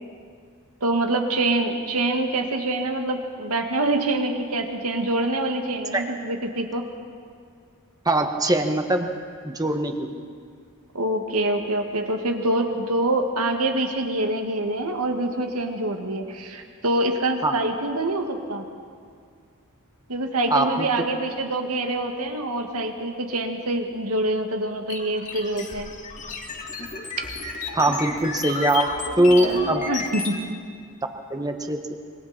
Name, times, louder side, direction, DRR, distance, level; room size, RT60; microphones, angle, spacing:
voice 1, 0.8-6.9 10.9-18.6 20.1-25.9 29.4-30.3, right 2 dB, 85° right, 3 dB, 2.2 m, -25 dB
voice 2, 8.0-9.1 9.4-10.1 17.4-17.6 20.5-20.9 27.7-28.8 29.2-29.8 31.3-32.0, right 1 dB, 15° right, 5 dB, 1.4 m, -21 dB
sound 1, 24.9-30.4, left 3 dB, 35° left, 2.0 m, -32 dB
26.5 x 23.5 x 4.5 m, 2.2 s
head